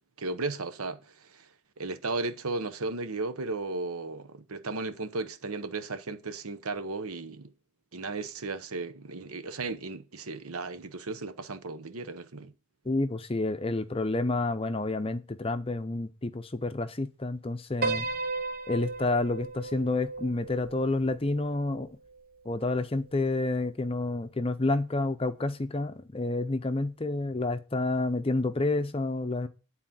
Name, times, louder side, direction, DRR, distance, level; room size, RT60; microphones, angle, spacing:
voice 1, 0.2-1.5 1.8-7.5 7.9-12.5, right 3 dB, 80° right, 0.9 m, -35 dB
voice 2, 12.9-18.1 18.7-21.9 22.5-29.5, left 2 dB, 25° left, 0.6 m, -29 dB
Piano, 17.8-22.2, right 3 dB, 40° right, 0.7 m, -35 dB
10.0 x 4.1 x 7.3 m
head